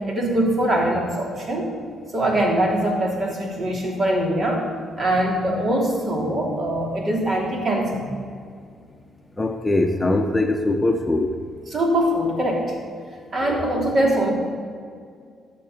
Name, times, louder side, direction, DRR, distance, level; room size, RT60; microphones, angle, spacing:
voice 1, 0.1-1.7 2.1-4.7 5.0-8.1 11.7-12.7 13.3-14.3, right 1 dB, 45° right, 0 dB, 3.2 m, -22 dB
voice 2, 9.4-11.3 13.4-13.7, left 2 dB, 15° left, 3 dB, 1.0 m, -22 dB
12.5 x 7.8 x 7.5 m, 2.2 s
cardioid pair, 90°, 0 cm